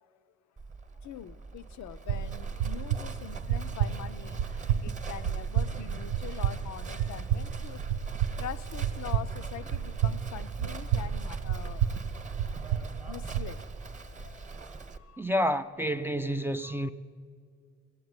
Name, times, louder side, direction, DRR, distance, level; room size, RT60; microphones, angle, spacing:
Livestock farm animals working animals, 0.6-15.0, right 4 dB, 25° right, 0.9 m, -44 dB
voice 1, 1.0-7.8 8.4-12.0 13.1-13.6 14.0-15.3 16.6-16.9, left 10 dB, 65° left, 0.6 m, -44 dB
sound 1, 2.1-13.5, right 9 dB, 80° right, 0.6 m, -31 dB
voice 2, 15.2-16.9, equal, 10° right, 0.4 m, -29 dB
16.0 x 7.9 x 9.6 m
cardioid pair, 90°, 30 cm